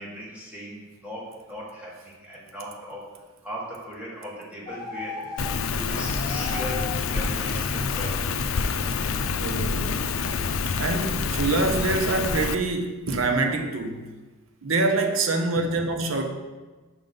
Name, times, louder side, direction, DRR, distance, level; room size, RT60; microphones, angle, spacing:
voice 1, 0.0-3.1 3.4-5.3 5.7-8.2, equal, 5° right, -6 dB, 1.8 m, -38 dB
sound 1, 4.7-5.9 6.1-7.1 7.4-7.7, left 4 dB, 20° left, 1.2 m, -37 dB
Rain, 5.4-12.5, left 5 dB, 75° left, 0.5 m, -27 dB
voice 2, 9.4-10.0 10.8-14.1 14.6-16.3, right 3 dB, 70° right, 4 dB, 0.9 m, -25 dB
6.2 x 5.3 x 5.5 m, 1.2 s
head